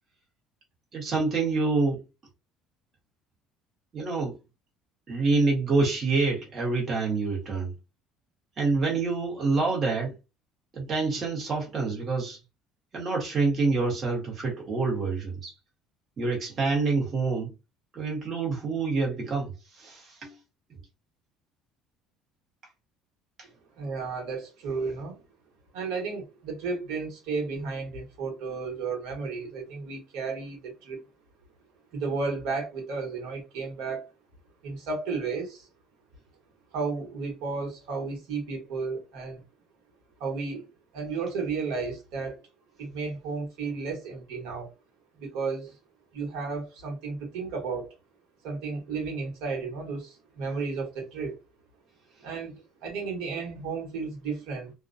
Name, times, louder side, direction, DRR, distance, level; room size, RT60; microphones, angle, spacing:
voice 1, 0.9-2.0 3.9-4.4 5.1-7.7 8.6-10.1 10.7-12.4 12.9-15.5 16.2-17.5 17.9-20.4, right 3 dB, 35° right, 1.1 m, -27 dB
voice 2, 23.8-25.2 25.7-31.0 31.9-34.1 34.6-35.7 36.7-39.4 40.2-40.7 40.9-42.4 42.8-44.7 45.2-45.8 46.1-47.9 48.4-51.4 52.2-54.7, right 4 dB, 80° right, 1.1 m, -33 dB
2.2 x 2.1 x 2.5 m
cardioid pair, 135°, 0 cm